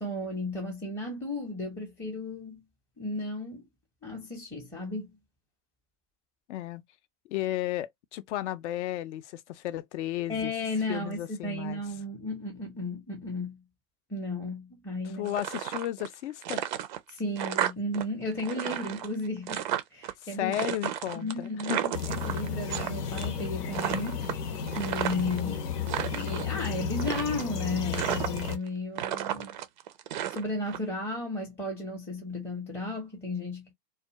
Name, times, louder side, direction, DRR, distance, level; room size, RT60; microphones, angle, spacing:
voice 1, 0.0-2.6 3.0-3.7 4.0-5.2 10.3-13.6 14.1-15.3 17.1-20.5 21.1-24.3 24.7-25.7 26.1-29.6 30.3-33.7, left 2 dB, 5° left, 0.6 m, -34 dB
voice 2, 6.5-6.8 7.3-10.5 10.9-11.8 15.2-16.6 20.4-21.9, left 13 dB, 50° left, 0.5 m, -33 dB
sound 1, 15.2-16.1 16.4-18.0 18.3-20.1 20.5-22.9 23.2-23.5 23.7-25.4 25.8-26.5 27.0-27.6 27.9-28.7 28.9-30.8, right 11 dB, 35° right, 0.4 m, -33 dB
sound 2, 21.9-28.6, left 7 dB, 75° left, 0.8 m, -33 dB
2.3 x 2.3 x 2.8 m
hypercardioid pair, 120°, 47 cm